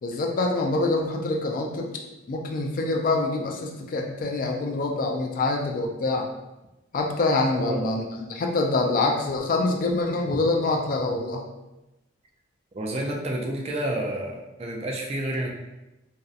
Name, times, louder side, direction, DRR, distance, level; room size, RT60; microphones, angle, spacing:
voice 1, 0.0-1.9 2.3-6.3 6.9-11.4, left 2 dB, 45° left, 2 dB, 0.3 m, -25 dB
voice 2, 12.7-15.5, right 1 dB, 35° right, -1 dB, 0.4 m, -29 dB
2.6 x 2.0 x 2.4 m, 0.98 s
head